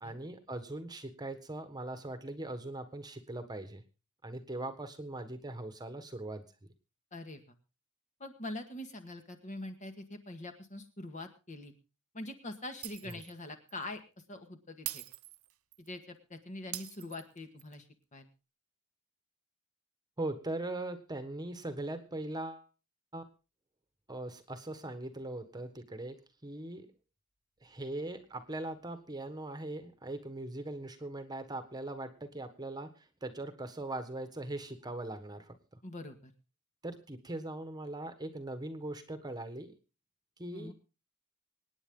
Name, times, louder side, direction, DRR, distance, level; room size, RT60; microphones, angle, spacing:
voice 1, 0.0-3.8 4.2-6.4 13.1-13.2 20.2-22.7 23.1-23.2 24.1-26.9 27.6-35.5 36.8-39.7 40.4-40.7, right 2 dB, 20° right, 9 dB, 1.5 m, -40 dB
voice 2, 7.1-7.4 8.2-11.7 12.1-14.0 14.3-15.0 15.8-18.3 35.8-36.3 40.5-40.7, left 1 dB, 35° left, 6 dB, 1.9 m, -44 dB
Shatter, 12.8-13.4 13.7-13.8 14.8-15.9 16.7-17.7, right 16 dB, 80° right, 0.7 m, -43 dB
25.5 x 9.7 x 3.8 m, 0.32 s
head